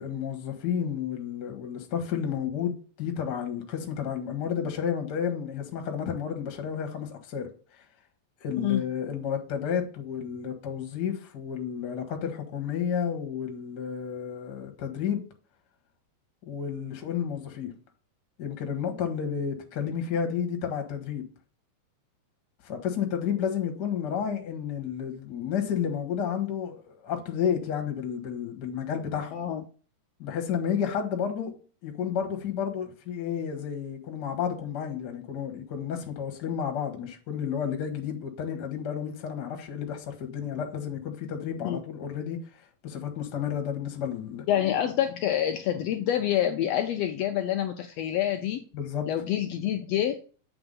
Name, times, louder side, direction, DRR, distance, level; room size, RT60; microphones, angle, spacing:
voice 1, 0.0-7.8 8.4-15.2 16.4-17.7 18.4-21.2 22.6-29.3 30.2-31.5 31.8-42.4 42.8-44.4 48.7-49.1, left 8 dB, 50° left, 1.4 m, -31 dB
voice 2, 29.3-29.6 41.6-41.8 44.5-48.6 49.1-50.2, left 11 dB, 85° left, 1.5 m, -27 dB
8.0 x 3.6 x 5.3 m
omnidirectional pair, 3.5 m